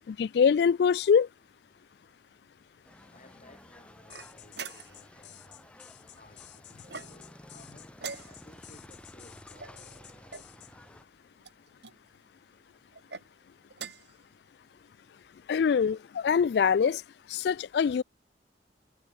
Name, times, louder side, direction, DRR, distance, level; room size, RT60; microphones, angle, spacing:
voice 1, 0.1-1.3 15.5-17.0 17.3-18.0, left 6 dB, 60° left, 0.3 m, -24 dB
sound 1, 2.8-11.0, left 1 dB, 5° left, 2.5 m, -53 dB
voice 2, 3.1-5.7 6.1-9.8, left 2 dB, 40° left, 5.3 m, -58 dB
sound 2, 4.1-10.7, left 14 dB, 80° left, 1.8 m, -53 dB
sound 3, 4.1-5.2 6.8-7.4 8.0-8.7 9.6-10.5 11.4-12.0 12.9-13.3 13.7-14.2, right 5 dB, 65° right, 3.5 m, -44 dB
head